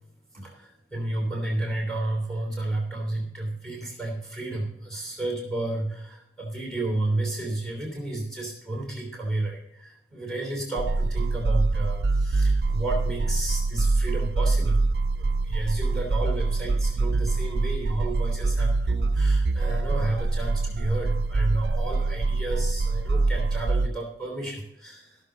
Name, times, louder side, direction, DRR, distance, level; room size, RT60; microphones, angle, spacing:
voice 1, 0.3-14.8 15.1-25.2, right 2 dB, 5° left, 0 dB, 3.1 m, -31 dB
sound 1, 10.8-23.9, right 3 dB, 70° right, 0.4 m, -24 dB
16.5 x 6.7 x 3.8 m, 0.79 s
head